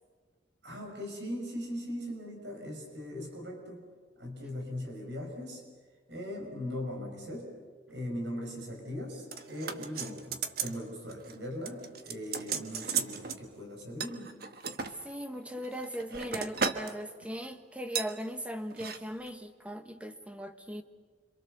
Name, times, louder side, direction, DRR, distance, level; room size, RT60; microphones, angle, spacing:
voice 1, 0.6-3.9 4.2-5.6 6.1-7.5 7.9-14.4, left 1 dB, 75° right, 2 dB, 6.7 m, -39 dB
sound 1, 9.3-10.8 11.1-11.4 11.7-13.4 14.0-14.9 15.6-16.9 17.2-17.4 18.0-18.1 18.7-19.0 19.3-19.4, right 6 dB, 55° right, 1.4 m, -35 dB
voice 2, 14.9-20.8, equal, 5° right, 7 dB, 1.3 m, -39 dB
27.5 x 26.0 x 6.9 m, 1.4 s
head